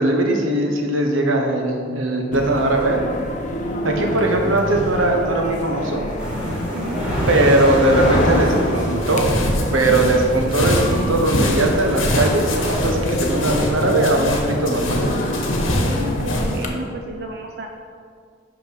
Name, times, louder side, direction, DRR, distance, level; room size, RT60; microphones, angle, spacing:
voice 1, 0.0-3.1 3.8-6.0 7.3-9.3 9.7-15.0, right 2 dB, 85° right, 2 dB, 1.1 m, -19 dB
sound 1, 2.3-16.7, left 1 dB, 40° left, 0.8 m, -27 dB
voice 2, 3.9-4.5 6.7-7.0 15.7-17.7, right 1 dB, 55° right, 2 dB, 0.5 m, -32 dB
sound 2, 6.2-12.7, equal, 5° right, 1.9 m, -28 dB
sound 3, 8.9-16.6, left 1 dB, 90° left, 1.2 m, -24 dB
5.9 x 5.4 x 5.9 m, 2.1 s
head